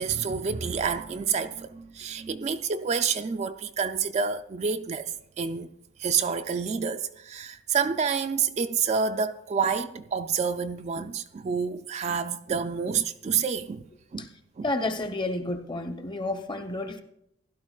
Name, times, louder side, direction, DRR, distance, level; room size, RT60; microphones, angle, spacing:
voice 1, 0.0-5.7 6.0-13.9 14.1-14.3 14.6-14.7, right 6 dB, 35° right, 0.3 m, -28 dB
voice 2, 14.6-17.0, left 2 dB, 25° left, 0.7 m, -30 dB
16.0 x 12.0 x 2.3 m
head